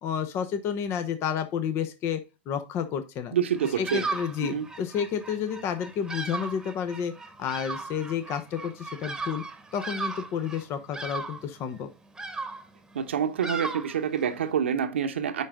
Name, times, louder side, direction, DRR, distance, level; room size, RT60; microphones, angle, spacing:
voice 1, 0.0-3.3 3.8-7.1 7.4-9.4 9.7-11.9, left 8 dB, 45° left, 1.0 m, -30 dB
voice 2, 3.3-4.0 4.4-4.6 12.9-15.4, right 8 dB, 85° right, 1.1 m, -27 dB
Bird vocalization bird call bird song, 3.5-14.5, right 3 dB, 10° right, 1.3 m, -37 dB
9.6 x 3.9 x 3.7 m
hypercardioid pair, 105°, 6 cm